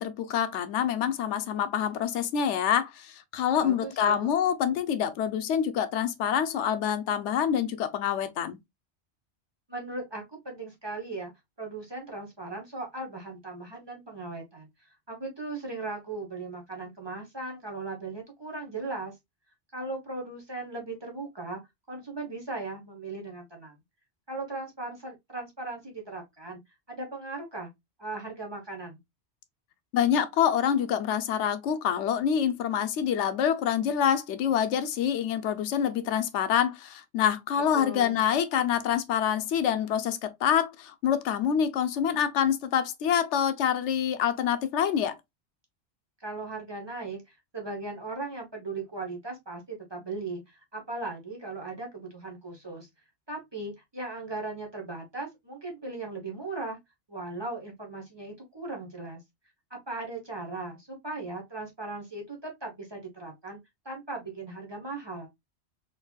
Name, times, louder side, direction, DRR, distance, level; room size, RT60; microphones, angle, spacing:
voice 1, 0.0-8.6 29.9-45.2, left 9 dB, 90° left, 0.9 m, -26 dB
voice 2, 3.6-4.3 9.7-11.3 11.6-14.7 15.1-19.1 19.7-21.6 21.9-23.7 24.3-26.6 26.9-27.7 28.0-29.0 37.7-38.2 46.2-52.9 53.3-56.8 57.1-59.2 59.7-63.6 63.8-65.3, right 3 dB, 25° right, 0.9 m, -38 dB
3.9 x 2.9 x 2.2 m
omnidirectional pair, 1.2 m